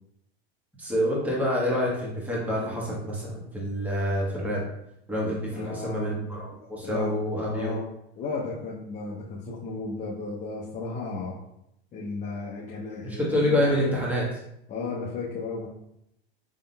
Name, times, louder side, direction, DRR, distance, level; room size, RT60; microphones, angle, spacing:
voice 1, 0.8-4.6 5.1-7.7 13.0-14.2, equal, 5° right, -5 dB, 1.2 m, -27 dB
voice 2, 5.5-6.1 6.6-7.1 7.5-7.9 8.2-11.4 11.9-13.9 14.7-15.7, left 3 dB, 25° left, -5 dB, 0.6 m, -34 dB
5.3 x 3.6 x 2.2 m, 0.80 s
hypercardioid pair, 110°, 32 cm